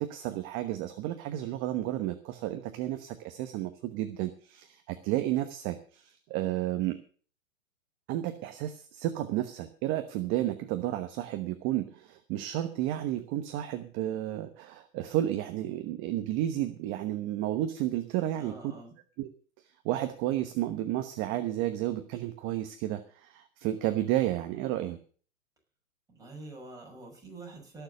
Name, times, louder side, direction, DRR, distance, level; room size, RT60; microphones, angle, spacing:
voice 1, 0.0-7.0 8.1-18.5 19.2-19.3 19.8-25.0, right 13 dB, 30° right, 8 dB, 1.1 m, -32 dB
voice 2, 18.3-19.0 26.1-27.8, right 2 dB, 10° right, -1 dB, 5.9 m, -46 dB
18.0 x 7.0 x 6.6 m, 0.43 s
hypercardioid pair, 130°, 40 cm